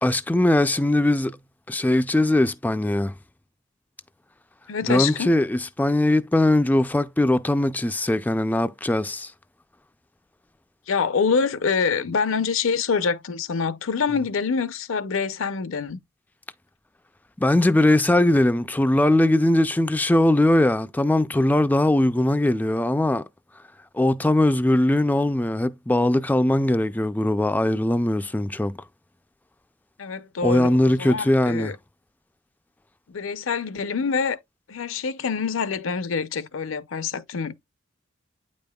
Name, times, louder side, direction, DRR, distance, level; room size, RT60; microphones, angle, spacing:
voice 1, 0.0-1.4 1.7-3.1 4.9-9.3 17.4-23.2 23.9-28.7 30.4-31.7, left 1 dB, 10° left, 0.3 m, -20 dB
voice 2, 4.7-5.3 10.9-16.0 30.0-31.8 33.1-34.4 34.7-37.6, left 5 dB, 75° left, 0.6 m, -26 dB
8.8 x 5.2 x 2.2 m
head